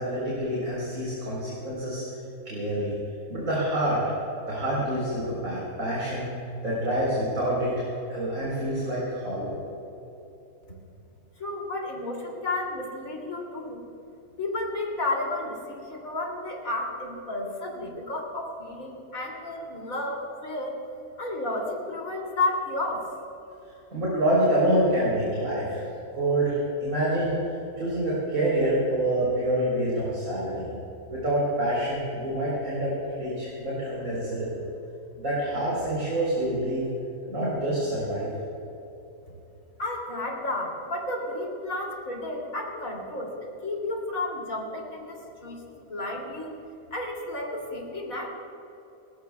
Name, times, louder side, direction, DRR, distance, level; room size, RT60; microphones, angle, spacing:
voice 1, 0.0-2.0 2.4-2.9 3.3-4.0 4.5-6.3 6.6-9.5 23.9-25.8 26.1-27.4 27.8-30.7 31.1-32.9 33.2-34.6 35.2-36.8 37.3-38.3, right 1 dB, 60° right, -7 dB, 4.7 m, -26 dB
voice 2, 11.4-13.8 14.4-20.8 21.2-23.0 39.8-43.3 43.6-45.6 45.9-46.5 46.9-48.3, left 2 dB, 60° left, -1 dB, 3.5 m, -32 dB
29.5 x 16.0 x 2.4 m, 3.0 s
omnidirectional pair, 1.6 m